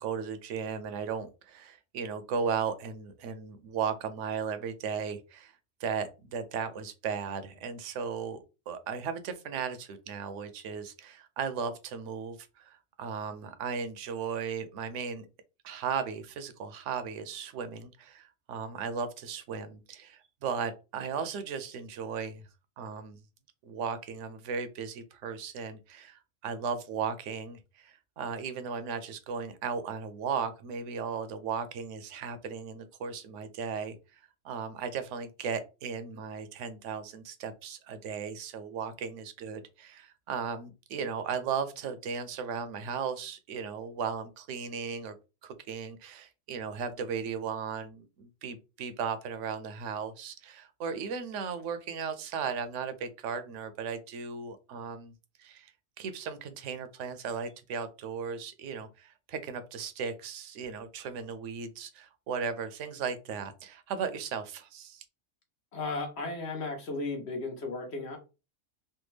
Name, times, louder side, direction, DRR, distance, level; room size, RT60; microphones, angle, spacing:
voice 1, 0.0-5.5 5.8-15.3 15.6-22.4 22.8-23.2 23.6-34.2 34.4-45.1 45.4-55.1 55.4-55.7 56.0-65.0, right 6 dB, 80° right, 0.9 m, -36 dB
voice 2, 65.7-68.2, left 3 dB, 60° left, 1.2 m, -35 dB
3.4 x 2.2 x 3.1 m
omnidirectional pair, 1.3 m